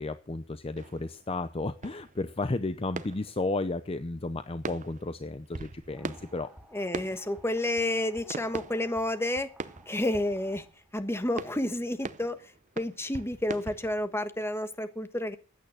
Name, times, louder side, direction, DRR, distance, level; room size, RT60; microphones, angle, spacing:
voice 1, 0.0-6.5, left 2 dB, 30° left, 12 dB, 0.7 m, -33 dB
sound 1, 0.8-4.1 4.4-10.9 11.4-14.1, right 3 dB, 40° right, 0.7 m, -42 dB
sound 2, 5.9-11.0, equal, 5° right, 1.5 m, -55 dB
voice 2, 6.7-9.5 9.9-10.6 10.9-15.4, left 1 dB, 10° left, 10 dB, 1.3 m, -30 dB
15.0 x 9.3 x 6.5 m, 0.36 s
head